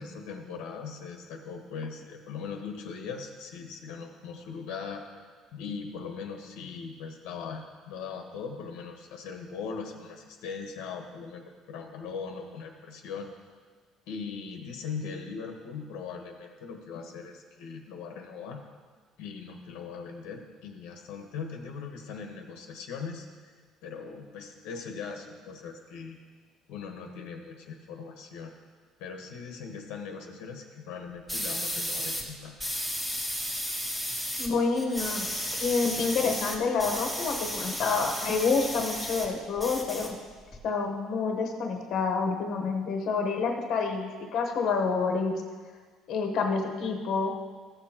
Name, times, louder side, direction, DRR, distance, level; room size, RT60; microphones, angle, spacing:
voice 1, 0.0-5.0 5.5-13.3 14.1-18.6 19.2-23.3 23.8-26.2 26.7-28.5 29.0-32.5, left 5 dB, 90° left, 3 dB, 1.1 m, -40 dB
sound 1, 31.3-32.2 32.6-34.5 34.7-39.3 39.6-40.6, equal, 5° right, 1.3 m, -33 dB
voice 2, 34.4-40.2 40.6-45.4 46.1-47.3, left 4 dB, 50° left, 2 dB, 1.0 m, -28 dB
14.5 x 7.0 x 2.9 m, 1.5 s
cardioid pair, 155°, 0 cm